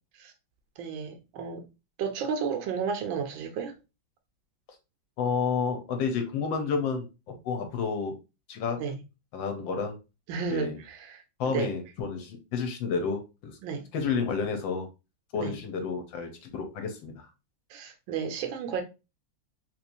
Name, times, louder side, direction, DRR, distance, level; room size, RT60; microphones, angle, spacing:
voice 1, 0.8-1.6 2.0-3.7 8.8-9.0 10.3-11.7 13.6-13.9 15.3-15.5 17.7-18.8, right 6 dB, 85° right, 1.5 m, -32 dB
voice 2, 5.2-8.2 8.5-8.8 9.3-10.0 10.5-10.8 11.4-13.6 13.9-14.9 15.3-17.3, left 5 dB, 75° left, 1.5 m, -30 dB
3.5 x 3.0 x 2.5 m
omnidirectional pair, 2.1 m